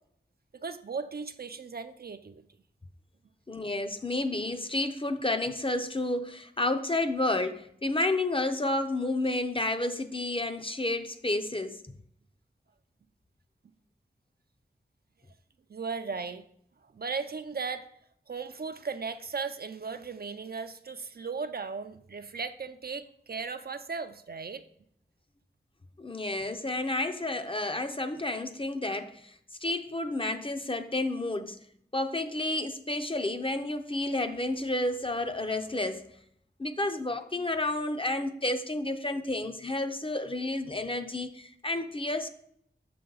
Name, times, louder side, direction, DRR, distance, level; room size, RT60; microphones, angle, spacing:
voice 1, 0.5-2.4 15.7-16.4 16.8-17.9 18.3-24.6, right 5 dB, 50° right, 0.4 m, -37 dB
voice 2, 3.5-11.8 26.0-31.6 31.9-36.0 36.6-42.3, left 2 dB, 25° left, 0.6 m, -31 dB
6.7 x 5.1 x 3.9 m
wide cardioid pair, 45°, 20 cm